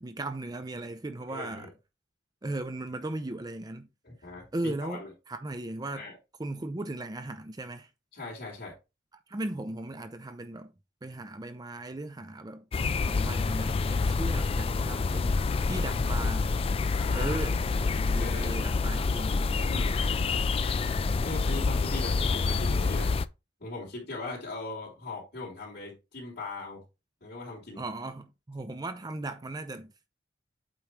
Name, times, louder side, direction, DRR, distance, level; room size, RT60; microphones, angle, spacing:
voice 1, 0.0-1.7 2.4-3.9 4.5-6.1 6.4-7.9 9.3-10.7 11.0-12.6 13.0-16.6 17.1-19.4 27.8-30.1, right 2 dB, 20° right, 0.5 m, -37 dB
voice 2, 1.3-1.7 4.0-5.1 5.9-6.2 8.1-8.7 16.9-17.4 18.2-18.5 19.7-20.0 21.2-23.1 23.6-26.8 27.2-27.8, left 3 dB, 60° left, 3.2 m, -39 dB
sound 1, 12.7-23.3, left 4 dB, 30° left, 0.3 m, -27 dB
8.2 x 3.2 x 4.6 m
head